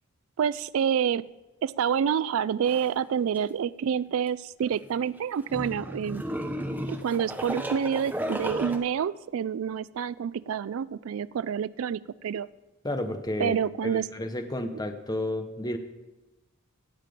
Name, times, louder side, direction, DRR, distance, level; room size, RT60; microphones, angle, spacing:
voice 1, 0.4-1.2 1.6-6.2 6.9-12.5 13.4-14.1 14.7-14.8, right 8 dB, 65° right, 18 dB, 0.3 m, -28 dB
sound 1, 2.6-2.9 3.4-3.5 4.6-8.8, equal, 10° right, 0.9 m, -34 dB
voice 2, 12.8-13.6 13.8-15.8, left 1 dB, 20° left, 7 dB, 1.0 m, -31 dB
17.0 x 7.5 x 5.2 m, 1.1 s
head